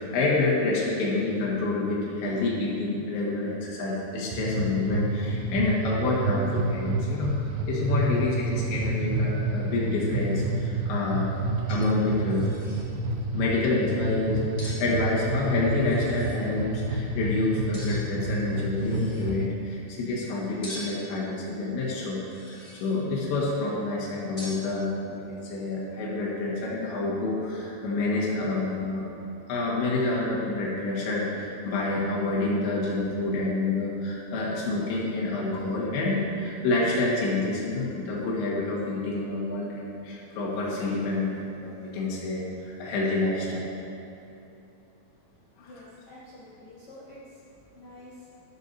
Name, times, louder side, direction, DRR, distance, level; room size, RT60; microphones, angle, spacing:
voice 1, 0.0-7.3 7.7-11.3 11.7-12.5 13.3-29.1 29.5-42.5 42.8-43.7 45.6-45.7, left 2 dB, 85° left, -5 dB, 4.0 m, -28 dB
sound 1, 4.3-19.5, right 2 dB, 80° right, 2.7 m, -29 dB
sound 2, 11.7-12.0 12.3-12.8 14.6-14.8 15.8-16.4 17.7-18.2 18.7-19.3 20.6-21.1 22.2-23.0 24.4-24.6, left 1 dB, 15° left, 1.7 m, -43 dB
voice 2, 45.6-47.4 47.7-48.3, left 1 dB, 55° left, -10 dB, 1.6 m, -48 dB
13.0 x 12.0 x 2.8 m, 2.8 s
omnidirectional pair, 5.0 m